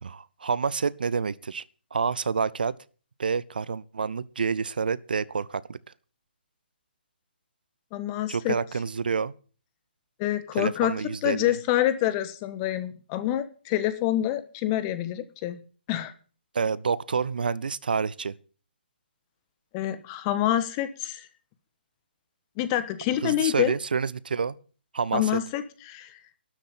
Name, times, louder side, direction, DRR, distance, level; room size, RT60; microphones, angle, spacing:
voice 1, 0.0-1.6 1.9-2.8 3.2-5.8 8.3-9.3 10.6-11.5 16.5-18.4 23.2-24.6 24.9-25.4, right 5 dB, 60° right, 0.6 m, -28 dB
voice 2, 7.9-8.6 10.2-10.9 11.2-15.6 15.9-16.1 19.7-21.3 22.6-23.7 25.1-26.2, left 13 dB, 25° left, 1.4 m, -27 dB
12.5 x 7.7 x 9.0 m
figure-of-eight pair, 135°, 6 cm